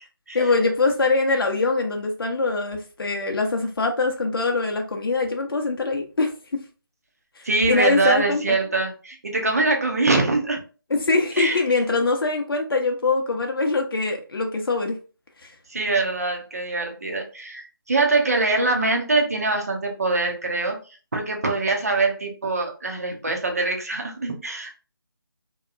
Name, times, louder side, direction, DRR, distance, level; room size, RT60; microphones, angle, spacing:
voice 1, 0.3-6.6 7.4-8.4 10.9-15.0 15.4-15.5, left 3 dB, 75° left, 2 dB, 0.6 m, -23 dB
voice 2, 7.4-10.6 11.4-11.6 15.7-24.8, right 3 dB, 40° right, 3 dB, 0.6 m, -23 dB
2.7 x 2.2 x 2.4 m, 0.35 s
figure-of-eight pair, 180°, 12 cm